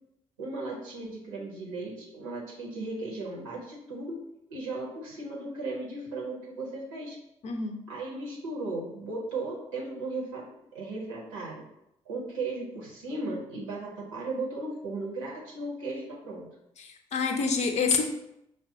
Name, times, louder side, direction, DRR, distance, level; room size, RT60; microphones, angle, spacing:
voice 1, 0.4-4.2 4.5-7.2 7.9-10.4 10.7-11.6 12.0-16.5, right 2 dB, 80° right, -3 dB, 0.7 m, -36 dB
voice 2, 7.4-7.8 16.8-18.0, left 5 dB, 45° left, 5 dB, 0.6 m, -27 dB
5.9 x 2.1 x 2.7 m, 0.83 s
figure-of-eight pair, 40°, 16 cm